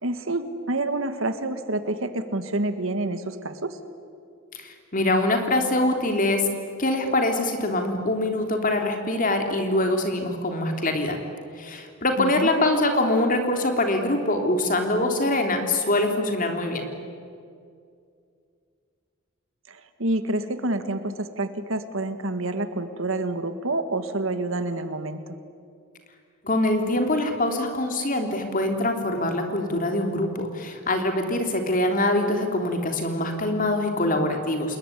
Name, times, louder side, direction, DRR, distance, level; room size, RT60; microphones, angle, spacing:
voice 1, 0.0-3.8 12.2-12.5 19.7-25.4, right 2 dB, 70° right, 10 dB, 1.8 m, -28 dB
voice 2, 4.5-6.5 6.8-11.2 11.5-16.8 26.4-34.8, left 1 dB, 40° left, 4 dB, 3.3 m, -24 dB
28.0 x 21.0 x 10.0 m, 2.4 s
head